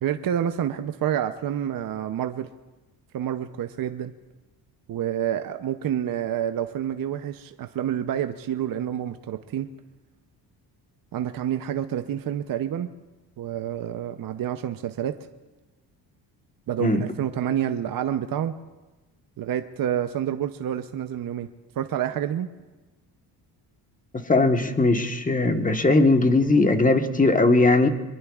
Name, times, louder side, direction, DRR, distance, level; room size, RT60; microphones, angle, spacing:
voice 1, 0.0-2.5 3.1-4.1 4.9-9.7 11.1-12.9 13.4-15.2 16.7-18.5 19.4-21.5 21.7-22.5, right 10 dB, 55° right, 8 dB, 0.7 m, -28 dB
voice 2, 24.1-27.9, left 2 dB, 20° left, 6 dB, 1.3 m, -19 dB
24.0 x 22.0 x 2.4 m, 1.2 s
cardioid pair, 100°, 42 cm